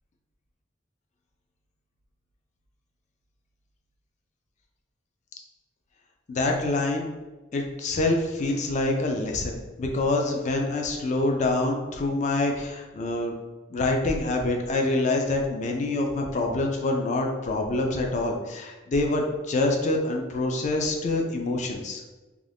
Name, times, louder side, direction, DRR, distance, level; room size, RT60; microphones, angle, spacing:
voice 1, 6.3-7.1 7.5-13.3 13.7-22.0, left 2 dB, 40° left, 2 dB, 0.3 m, -26 dB
2.4 x 2.3 x 3.3 m, 1.2 s
head